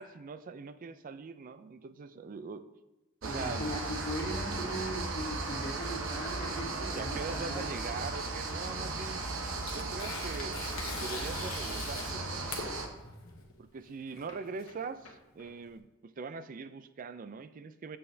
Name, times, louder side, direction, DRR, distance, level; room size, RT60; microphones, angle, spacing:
voice 1, 0.0-2.7 3.2-3.7 6.9-9.3 9.7-10.6 11.0-12.5 13.6-18.0, right 4 dB, 40° right, 13 dB, 0.4 m, -42 dB
sound 1, 3.2-12.9, right 3 dB, 70° right, 0.9 m, -36 dB
voice 2, 3.3-7.6, equal, 45° left, -5 dB, 1.9 m, -39 dB
Tearing, 9.0-15.8, left 5 dB, 75° left, 1.0 m, -44 dB
7.6 x 6.4 x 2.7 m, 1.1 s
head